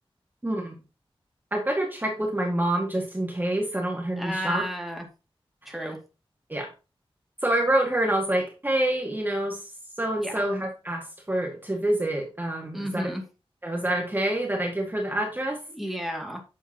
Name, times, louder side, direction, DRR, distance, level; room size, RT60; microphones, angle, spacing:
voice 1, 0.4-0.8 1.5-4.6 5.6-5.9 6.5-6.7 7.4-9.6 10.0-13.1 13.6-15.6, right 1 dB, 20° right, 0 dB, 1.9 m, -27 dB
voice 2, 4.2-5.1 5.7-6.0 10.2-10.4 12.7-13.2 15.7-16.4, equal, ahead, 2 dB, 2.3 m, -32 dB
8.9 x 7.0 x 2.9 m, 0.30 s
wide cardioid pair, 85°, 10 cm